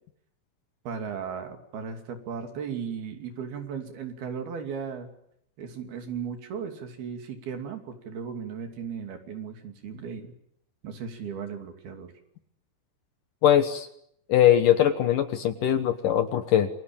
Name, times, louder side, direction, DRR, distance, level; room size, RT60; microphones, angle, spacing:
voice 1, 0.9-5.1 5.6-10.3 10.8-12.1, right 6 dB, 65° right, 6 dB, 4.6 m, -36 dB
voice 2, 13.4-13.9 14.3-16.7, left 11 dB, 65° left, 10 dB, 2.4 m, -21 dB
28.5 x 23.5 x 8.8 m, 0.73 s
omnidirectional pair, 4.9 m